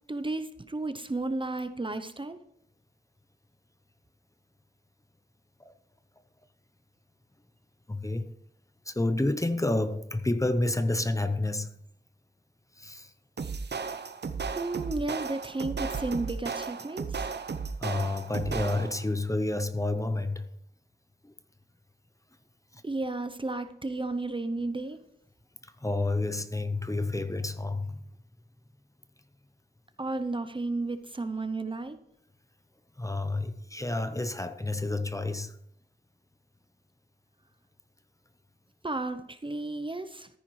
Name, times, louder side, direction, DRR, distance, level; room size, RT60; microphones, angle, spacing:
voice 1, 0.1-2.4 14.6-17.3 22.8-25.0 30.0-32.0 38.8-40.3, right 2 dB, 25° right, 0.6 m, -33 dB
voice 2, 7.9-8.3 8.9-11.7 12.8-13.1 17.8-20.5 21.2-21.3 22.7-22.8 25.8-28.0 33.0-35.6, left 2 dB, 15° left, 0.7 m, -29 dB
sound 1, 13.4-19.1, right 5 dB, 65° right, 0.7 m, -35 dB
14.0 x 9.9 x 3.2 m
wide cardioid pair, 80°, 19 cm